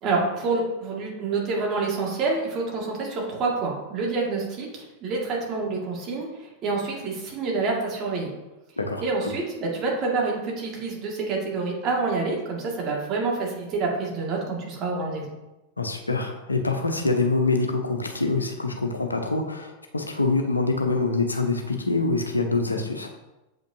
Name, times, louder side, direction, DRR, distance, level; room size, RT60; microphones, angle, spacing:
voice 1, 0.0-8.3 9.0-15.2, right 3 dB, 35° right, -2 dB, 1.8 m, -27 dB
voice 2, 8.8-9.3 15.8-23.1, left 3 dB, 80° left, 4 dB, 0.7 m, -25 dB
7.3 x 5.2 x 2.6 m, 1.0 s
figure-of-eight pair, 90°, 0 cm